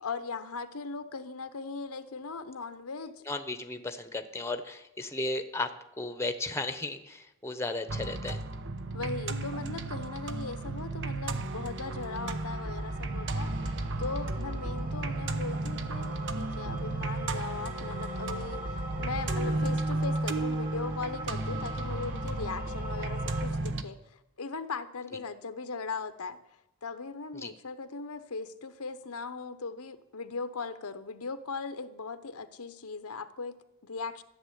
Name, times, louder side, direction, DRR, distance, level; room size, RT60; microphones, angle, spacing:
voice 1, 0.0-3.2 8.9-13.6 14.0-26.4 26.8-34.2, left 4 dB, 70° left, 11 dB, 0.9 m, -39 dB
voice 2, 3.3-8.4 27.3-27.5, left 2 dB, 10° left, 9 dB, 1.0 m, -35 dB
sound 1, 7.9-23.8, right 2 dB, 55° right, 1.0 m, -33 dB
sound 2, 11.8-23.5, right 1 dB, 40° right, 2.5 m, -44 dB
14.0 x 7.4 x 10.0 m, 0.88 s
head